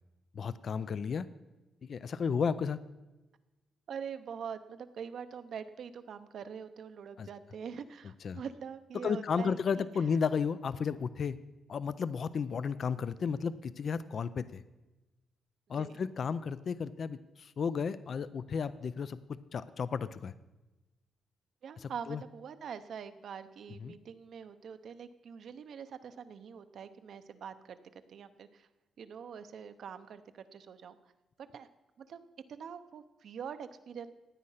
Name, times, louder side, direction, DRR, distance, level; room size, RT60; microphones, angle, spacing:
voice 1, 0.3-1.3 1.8-2.8 7.2-7.3 8.2-8.4 9.0-11.4 11.7-14.6 15.7-19.2 19.5-20.3 21.8-22.2 23.8-23.9, left 6 dB, 45° left, 15 dB, 0.4 m, -33 dB
voice 2, 3.9-9.9 15.7-16.0 21.6-27.8 28.1-28.7 29.0-31.0 31.5-31.7 32.0-32.2 32.5-34.1, right 7 dB, 60° right, 10 dB, 0.8 m, -44 dB
16.0 x 9.7 x 5.7 m, 1.1 s
wide cardioid pair, 155°, 0 cm